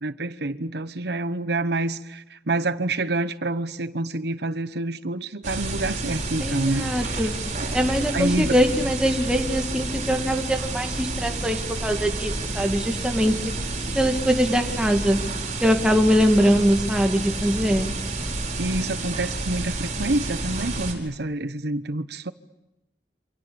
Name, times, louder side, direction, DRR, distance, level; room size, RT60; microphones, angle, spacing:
voice 1, 0.0-7.3 7.6-7.7 8.1-8.6 18.6-22.3, right 2 dB, 65° right, 1.1 m, -27 dB
sound 1, 5.4-20.9, right 2 dB, 45° right, 5.0 m, -30 dB
voice 2, 6.4-7.3 7.7-13.3 13.9-15.2 15.6-17.9, equal, 5° right, 2.3 m, -22 dB
28.0 x 27.0 x 7.1 m
head